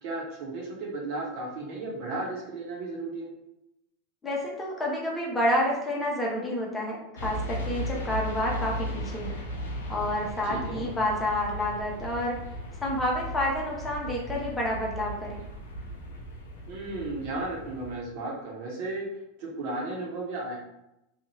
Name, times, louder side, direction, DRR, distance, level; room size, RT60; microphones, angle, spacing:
voice 1, 0.0-3.3 10.4-10.8 16.7-19.1 19.4-20.6, right 2 dB, 55° right, -3 dB, 1.0 m, -34 dB
voice 2, 4.2-9.3 9.9-12.4 12.8-15.4, left 1 dB, 15° left, -3 dB, 0.9 m, -29 dB
sound 1, 7.2-18.0, equal, 80° left, 0.6 m, -37 dB
2.6 x 2.4 x 3.0 m, 0.84 s
hypercardioid pair, 90°, 0 cm